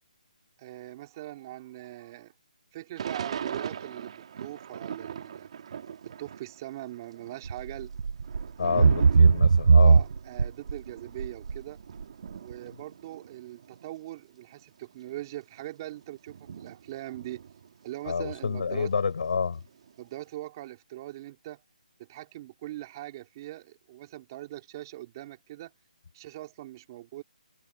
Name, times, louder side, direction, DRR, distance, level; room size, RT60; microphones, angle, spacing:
voice 1, 0.6-2.3 2.7-5.5 6.0-7.9 8.6-9.0 9.8-11.8 12.4-17.4 17.8-18.9 20.0-21.6 22.0-25.7 26.1-27.2, right 15 dB, 30° right, 3.0 m, -41 dB
Thunder / Rain, 3.0-6.6 6.9-14.0 14.6-14.7 14.9-18.0 18.4-20.1, right 8 dB, 45° right, 2.7 m, -41 dB
sound 1, 7.5-7.7 8.0-8.4 8.8-10.8 11.2-11.6 12.0-12.1, right 5 dB, 70° right, 0.4 m, -18 dB
voice 2, 8.6-10.0 18.0-19.6, left 5 dB, 65° left, 6.6 m, -29 dB
hypercardioid pair, 160°, 4 cm